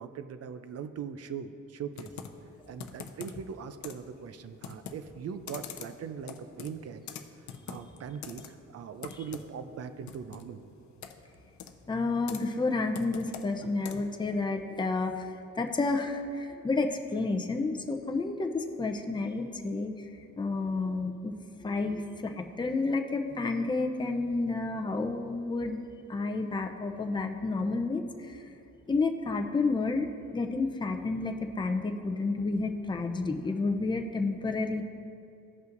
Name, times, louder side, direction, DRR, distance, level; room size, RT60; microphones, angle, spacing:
voice 1, 0.0-2.1 2.7-7.0 7.7-10.6, right 7 dB, 55° right, 10 dB, 0.6 m, -40 dB
Computer keyboard, 1.9-14.2, left 7 dB, 70° left, 0.7 m, -46 dB
voice 2, 11.9-20.1 20.4-21.3 21.6-25.8 26.1-28.4 28.9-34.8, left 3 dB, 15° left, 4 dB, 0.6 m, -30 dB
15.5 x 5.4 x 2.6 m, 2.6 s
cardioid pair, 90°, 30 cm